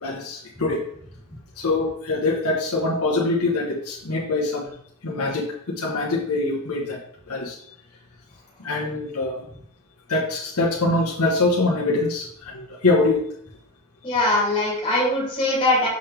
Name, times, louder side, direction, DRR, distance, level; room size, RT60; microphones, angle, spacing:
voice 1, 0.0-0.8 1.6-4.7 5.0-7.0 7.3-7.6 8.6-9.4 10.1-13.2, left 2 dB, 75° left, -4 dB, 1.2 m, -24 dB
voice 2, 14.0-15.9, left 2 dB, 25° left, -4 dB, 2.8 m, -21 dB
6.4 x 5.8 x 3.4 m, 0.67 s
head